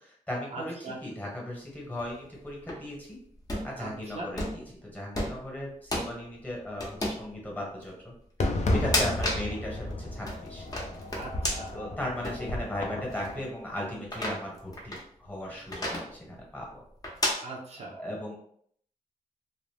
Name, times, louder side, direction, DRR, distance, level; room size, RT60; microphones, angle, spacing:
voice 1, 0.0-0.7 1.0-3.2 3.6-8.1 8.7-10.7 11.7-16.8 17.9-18.4, left 1 dB, 10° left, -2 dB, 1.1 m, -37 dB
voice 2, 0.5-1.0 3.8-4.3 8.9-9.0 11.1-11.8 17.4-18.0, right 2 dB, 55° right, -1 dB, 0.5 m, -40 dB
sound 1, 1.8-2.8 3.4-3.7 4.4-4.6 5.1-5.4 5.9-6.1 6.8-7.2 7.8-7.9 8.7-9.5 9.9-11.7 12.2-12.4 13.1-13.3 14.0-15.0 15.7-16.1 17.0-17.3, left 1 dB, 25° left, 0.8 m, -31 dB
Fireworks, 8.4-13.5, left 1 dB, 60° left, 0.5 m, -32 dB
2.5 x 2.0 x 3.2 m, 0.65 s
cardioid pair, 75°, 13 cm